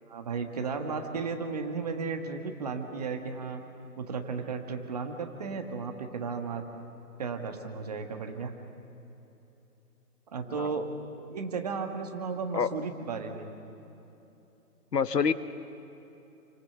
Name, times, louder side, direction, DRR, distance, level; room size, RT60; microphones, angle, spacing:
voice 1, 0.1-3.6 4.0-6.6 7.2-8.5 10.3-10.9 11.3-13.5, right 5 dB, 25° right, 5 dB, 1.5 m, -34 dB
voice 2, 10.4-10.8 12.5-12.7 14.9-15.3, left 6 dB, 75° left, 12 dB, 1.4 m, -27 dB
29.0 x 25.0 x 7.9 m, 3.0 s
hypercardioid pair, 170°, 49 cm